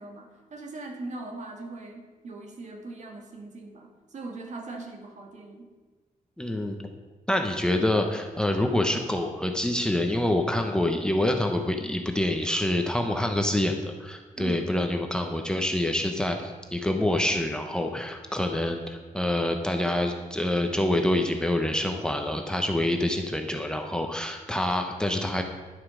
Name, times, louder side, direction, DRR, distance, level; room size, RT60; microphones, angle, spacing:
voice 1, 0.0-5.7 14.4-14.7, right 2 dB, 55° right, 2 dB, 1.9 m, -40 dB
voice 2, 6.4-6.8 7.3-25.4, left 1 dB, 5° left, 3 dB, 0.9 m, -26 dB
11.0 x 8.2 x 6.2 m, 1.4 s
wide cardioid pair, 175°, 14 cm